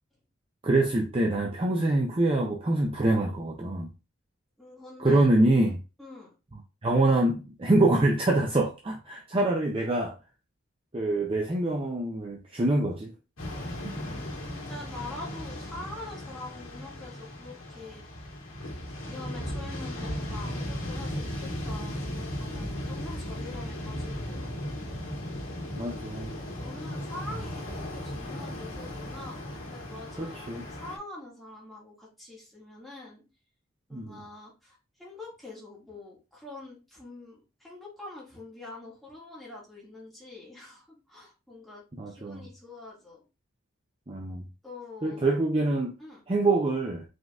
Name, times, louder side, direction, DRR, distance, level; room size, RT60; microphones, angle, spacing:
voice 1, 0.6-3.9 5.0-5.8 6.8-10.2 10.9-13.1 13.8-13.9 25.7-26.3 30.2-30.7 33.9-34.2 42.0-42.5 44.1-44.4 45.0-45.9 46.3-47.0, right 2 dB, 25° right, 0.5 m, -25 dB
voice 2, 4.6-5.3 6.0-6.3 13.8-18.0 19.1-24.8 26.6-33.2 33.9-43.2 44.6-45.3 46.0-46.2, left 2 dB, ahead, 1.9 m, -45 dB
sound 1, 13.4-31.0, left 1 dB, 85° left, 1.7 m, -36 dB
5.1 x 3.8 x 2.4 m
head